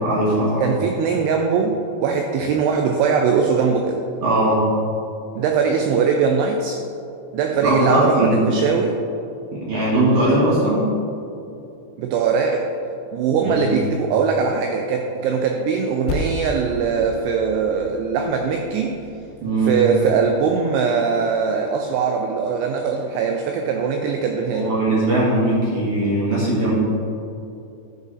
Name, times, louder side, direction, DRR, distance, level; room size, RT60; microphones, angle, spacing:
voice 1, 0.0-0.7 4.2-4.7 7.6-8.4 9.5-10.9 13.4-13.7 19.4-19.8 24.5-26.7, right 1 dB, 65° right, -7 dB, 1.4 m, -19 dB
voice 2, 0.6-4.0 5.4-6.8 7.3-9.0 12.0-12.7 13.1-19.0 19.7-24.7, right 5 dB, 85° right, 3 dB, 2.4 m, -21 dB
Percussion, 16.1-20.9, left 2 dB, 85° left, 2.2 m, -34 dB
11.5 x 5.4 x 4.0 m, 2.7 s
omnidirectional pair, 5.3 m